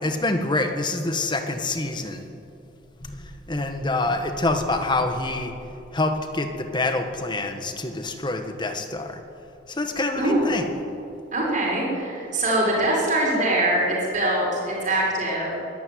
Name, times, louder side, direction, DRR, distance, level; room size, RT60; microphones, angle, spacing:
voice 1, 0.0-2.3 3.0-5.5 5.9-9.2 9.7-10.7, left 2 dB, 25° left, 6 dB, 1.6 m, -26 dB
voice 2, 10.2-10.5 11.3-15.5, right 1 dB, 40° right, -3 dB, 6.1 m, -23 dB
22.5 x 13.0 x 9.5 m, 2.7 s
head